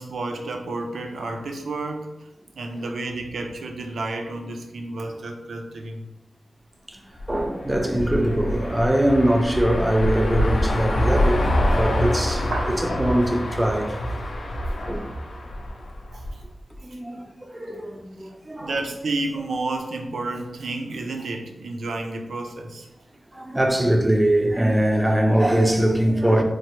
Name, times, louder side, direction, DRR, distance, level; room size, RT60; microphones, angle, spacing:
voice 1, 0.0-2.3 2.5-6.1 12.5-12.8 16.1-16.4 16.9-17.2 18.2-18.3 18.6-22.9, right 2 dB, 85° right, 0.4 m, -31 dB
sound 1, 7.2-16.4, left 1 dB, 60° left, 0.4 m, -25 dB
voice 2, 7.3-12.5 13.0-14.0 14.9-15.1 16.8-18.7 23.3-26.4, right 1 dB, 15° right, 0.3 m, -22 dB
3.1 x 2.0 x 2.9 m
wide cardioid pair, 110°, 0 cm